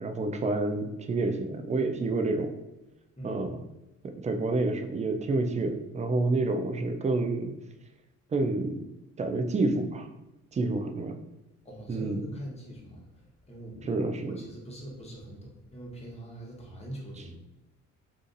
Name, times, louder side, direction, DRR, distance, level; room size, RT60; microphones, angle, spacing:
voice 1, 0.0-2.5 3.2-3.6 4.0-7.5 8.3-8.8 9.2-10.1 10.5-11.2 11.9-12.2 13.8-14.4, right 2 dB, 25° right, 6 dB, 0.4 m, -28 dB
voice 2, 3.2-3.5 11.6-13.0 13.5-17.4, right 1 dB, 20° left, -3 dB, 1.1 m, -42 dB
2.6 x 2.4 x 3.9 m, 0.97 s
cardioid pair, 90°, 30 cm